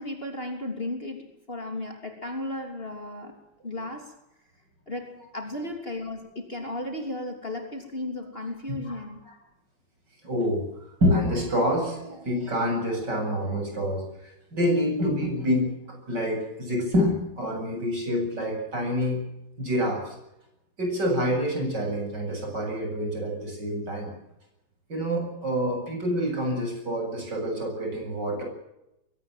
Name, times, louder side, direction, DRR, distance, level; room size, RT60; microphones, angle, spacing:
voice 1, 0.0-3.4 3.6-4.1 4.9-9.2, left 1 dB, 30° left, 4 dB, 3.3 m, -35 dB
voice 2, 8.7-9.0 10.2-10.6 11.0-14.0 14.5-19.2 19.6-20.1 20.8-24.1 24.9-28.4, equal, 55° right, 3 dB, 8.3 m, -27 dB
22.5 x 18.5 x 7.6 m, 0.85 s
omnidirectional pair, 2.2 m